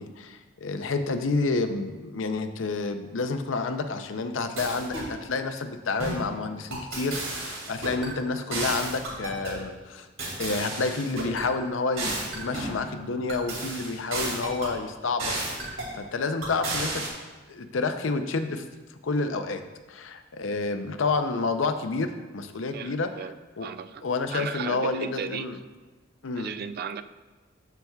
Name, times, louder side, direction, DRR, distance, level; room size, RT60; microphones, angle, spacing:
voice 1, 0.0-10.1 10.4-15.3 15.9-17.0 17.5-18.6 19.0-19.6 19.9-23.1 23.6-23.7 24.0-25.6 26.2-26.5, left 3 dB, 75° left, 8 dB, 0.6 m, -29 dB
sound 1, 4.6-5.1 6.0-6.3 6.7-8.1 8.5-9.6 10.2-11.4 12.0-12.8 13.3-14.7 15.2-15.9 16.4-17.1, right 2 dB, 85° right, 2.3 m, -32 dB
voice 2, 22.7-23.4 23.6-24.0 24.3-25.5 26.4-27.0, right 7 dB, 50° right, 12 dB, 0.3 m, -35 dB
13.0 x 5.8 x 2.3 m, 1.3 s
head